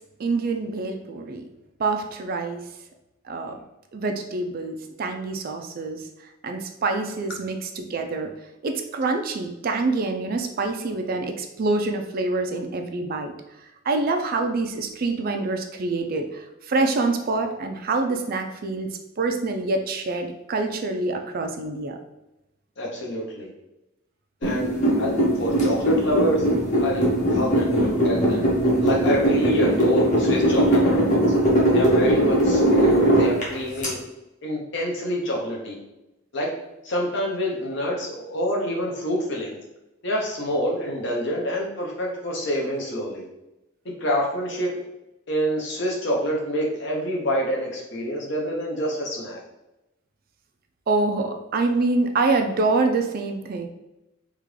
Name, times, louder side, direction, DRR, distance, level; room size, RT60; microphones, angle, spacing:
voice 1, 0.2-1.4 1.8-2.6 3.3-3.6 3.9-6.0 6.4-8.3 8.6-13.3 13.9-18.9 19.2-22.0 50.9-53.7, right 3 dB, 45° right, 5 dB, 0.4 m, -26 dB
voice 2, 22.8-23.5 24.4-26.4 26.8-27.0 27.3-28.4 28.8-31.3 31.7-34.0 34.4-35.8 36.3-36.5 36.8-39.6 40.0-43.3 44.0-44.7 45.3-49.4, equal, 60° left, -1 dB, 0.9 m, -27 dB
sound 1, 24.4-33.9, right 1 dB, 35° left, 1.0 m, -20 dB
3.6 x 2.4 x 3.2 m, 0.94 s
head